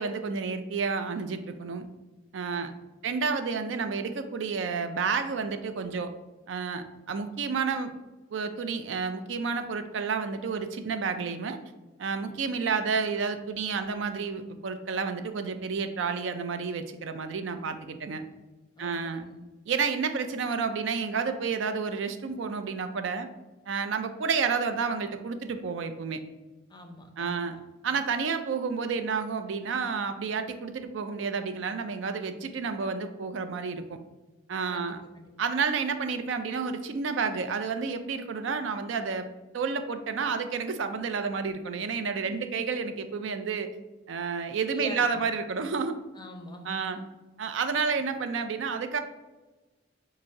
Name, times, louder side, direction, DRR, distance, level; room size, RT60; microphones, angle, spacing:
voice 1, 0.0-1.9 2.3-2.7 3.0-6.1 6.5-7.9 8.3-11.6 12.0-18.2 18.8-19.2 19.7-23.3 23.7-26.2 27.2-27.6 27.8-34.0 34.5-35.0 35.4-39.3 39.5-43.7 44.1-46.0 46.6-47.0 47.4-49.0, right 5 dB, 75° right, 8 dB, 0.4 m, -30 dB
voice 2, 18.8-19.4 26.7-27.4 34.7-35.3 42.2-42.6 44.7-45.2 46.1-47.1, left 1 dB, 20° left, 4 dB, 0.5 m, -44 dB
5.0 x 2.0 x 4.7 m, 1.1 s
head